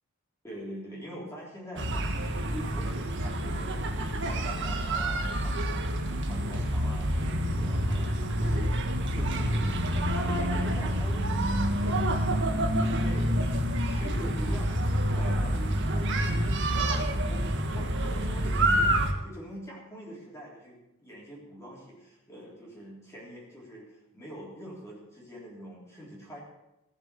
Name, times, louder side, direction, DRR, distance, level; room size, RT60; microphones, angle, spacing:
voice 1, 0.4-3.7 4.1-8.8 9.2-11.4 11.8-12.2 12.9-17.4 17.8-26.4, equal, 15° left, -5 dB, 3.6 m, -44 dB
sound 1, 1.8-19.1, right 1 dB, 60° right, 1.6 m, -28 dB
18.0 x 7.2 x 6.8 m, 0.91 s
head